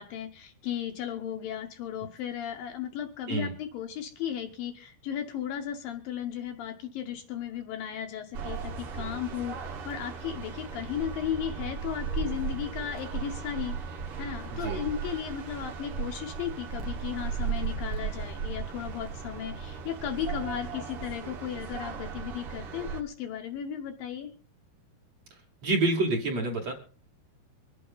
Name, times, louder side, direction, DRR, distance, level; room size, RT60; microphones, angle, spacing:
voice 1, 0.0-13.8 14.2-24.3, left 9 dB, 70° left, 4 dB, 2.4 m, -35 dB
sound 1, 8.3-23.0, right 6 dB, 70° right, 1.3 m, -36 dB
voice 2, 14.5-14.8 25.6-26.7, right 2 dB, 45° right, 0 dB, 2.8 m, -27 dB
25.0 x 8.6 x 3.9 m, 0.39 s
omnidirectional pair, 4.6 m